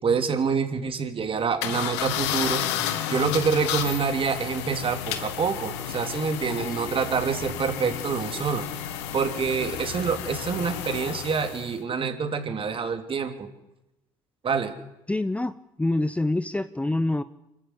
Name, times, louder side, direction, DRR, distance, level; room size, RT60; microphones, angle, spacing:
voice 1, 0.0-8.7 9.1-13.5 14.4-14.7, right 5 dB, 40° right, 7 dB, 3.1 m, -27 dB
sound 1, 1.6-11.7, left 10 dB, 85° left, 1.8 m, -32 dB
voice 2, 15.1-17.2, left 2 dB, 10° left, 13 dB, 0.8 m, -26 dB
25.5 x 14.0 x 8.3 m, 0.94 s
hypercardioid pair, 70°, 14 cm